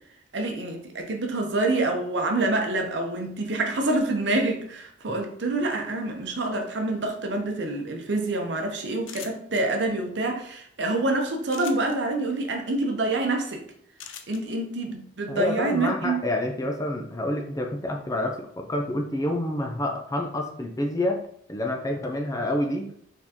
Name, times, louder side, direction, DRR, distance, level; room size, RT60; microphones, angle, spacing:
voice 1, 0.3-13.6 14.3-16.2, right 2 dB, 65° right, 3 dB, 0.7 m, -27 dB
sound 1, 9.0-9.6 11.5-12.0 14.0-14.4, left 8 dB, 80° left, 0.5 m, -40 dB
voice 2, 15.3-21.2 21.5-22.9, left 1 dB, 20° left, 3 dB, 0.4 m, -28 dB
4.4 x 3.6 x 2.9 m, 0.66 s
head